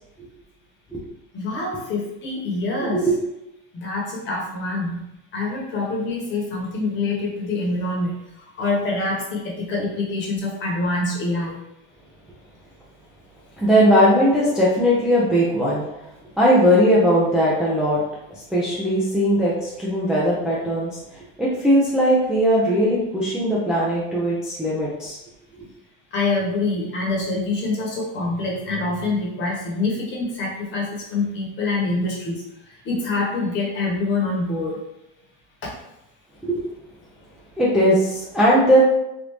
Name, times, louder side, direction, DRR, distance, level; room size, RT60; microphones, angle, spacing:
voice 1, 1.3-3.1 3.7-5.0 5.3-11.6 26.1-32.4 32.8-34.8 35.6-35.7, left 3 dB, 40° left, -3 dB, 1.2 m, -25 dB
voice 2, 2.8-3.1 13.6-15.8 16.4-18.0 18.5-21.0 21.4-25.2 36.4-36.6 37.6-38.8, equal, 5° right, -7 dB, 0.4 m, -19 dB
3.3 x 2.5 x 3.1 m, 0.88 s
cardioid pair, 155°, 29 cm